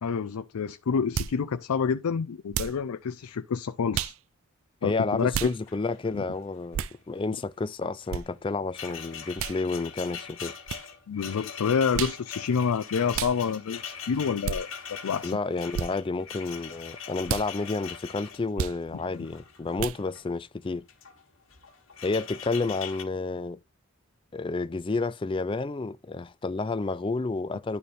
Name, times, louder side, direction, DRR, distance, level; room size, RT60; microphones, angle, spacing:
voice 1, 0.0-4.1 4.8-5.3 6.1-6.2 11.1-15.3, left 6 dB, 90° left, 0.4 m, -28 dB
sound 1, 1.1-1.4 2.5-2.8 3.9-4.2 5.3-5.5 6.7-7.0 8.1-8.2 9.4-9.6 10.7-10.8 11.9-12.2 13.1-13.4 14.4-14.6 15.7-15.9 17.2-17.5 18.6-18.8 19.8-20.0, right 8 dB, 70° right, 0.4 m, -31 dB
voice 2, 4.8-10.5 15.2-20.8 22.0-23.6 24.3-27.8, left 3 dB, 25° left, 0.3 m, -30 dB
sound 2, 5.2-5.3 5.5-6.4 6.6-6.9 8.0-20.2 20.8-21.2 21.5-23.0, left 7 dB, 60° left, 1.6 m, -42 dB
11.0 x 4.2 x 3.3 m
head